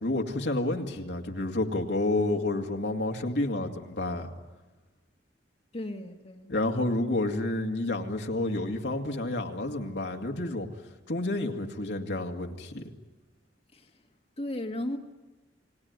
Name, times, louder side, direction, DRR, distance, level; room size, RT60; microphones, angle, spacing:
voice 1, 0.0-4.3 6.5-10.7 11.1-12.9, left 2 dB, 70° left, 2 dB, 2.3 m, -30 dB
voice 2, 5.7-6.5 13.7-14.0 14.4-15.0, left 1 dB, 35° left, 2 dB, 1.8 m, -35 dB
30.0 x 19.5 x 9.6 m, 1.2 s
head